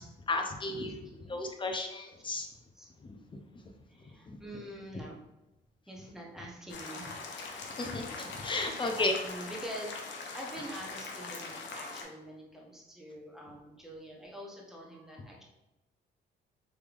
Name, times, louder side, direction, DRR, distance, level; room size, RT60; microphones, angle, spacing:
voice 1, 0.3-2.5 3.0-3.2 3.5-3.6 4.3-4.4 7.8-9.1, left 2 dB, 25° left, 4 dB, 0.5 m, -34 dB
voice 2, 0.9-1.4 2.8-2.9 3.9-5.2 5.9-7.1 8.6-15.4, right 1 dB, ahead, -2 dB, 0.9 m, -45 dB
sound 1, 6.7-12.0, left 4 dB, 65° left, 0.7 m, -42 dB
3.4 x 3.1 x 2.5 m, 0.97 s
cardioid pair, 90°, 20 cm